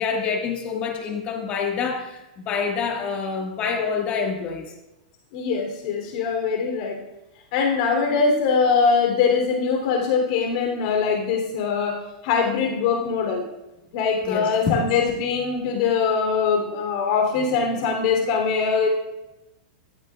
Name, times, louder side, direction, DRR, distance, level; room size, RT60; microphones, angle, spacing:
voice 1, 0.0-4.7 14.2-14.8, left 5 dB, 30° left, 1 dB, 1.6 m, -27 dB
voice 2, 5.3-7.0 7.5-12.0 12.2-13.4 13.9-18.9, left 5 dB, 55° left, 1 dB, 3.1 m, -22 dB
15.0 x 13.0 x 2.4 m, 0.94 s
supercardioid pair, 155°, 4 cm